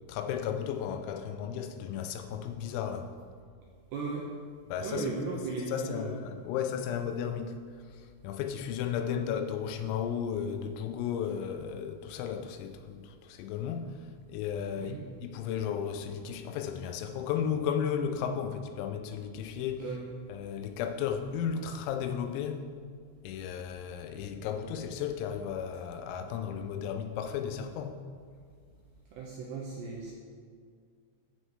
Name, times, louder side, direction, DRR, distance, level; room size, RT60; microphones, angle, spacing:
voice 1, 0.0-3.1 4.7-5.1 5.7-7.6 7.9-19.9 20.3-22.7 23.2-28.0, left 8 dB, 90° left, 3.4 m, -34 dB
voice 2, 3.9-4.3 4.8-6.2 9.0-9.3 14.8-15.1 19.8-20.0 29.1-30.1, right 4 dB, 80° right, 2.4 m, -36 dB
15.0 x 6.5 x 3.2 m
omnidirectional pair, 5.9 m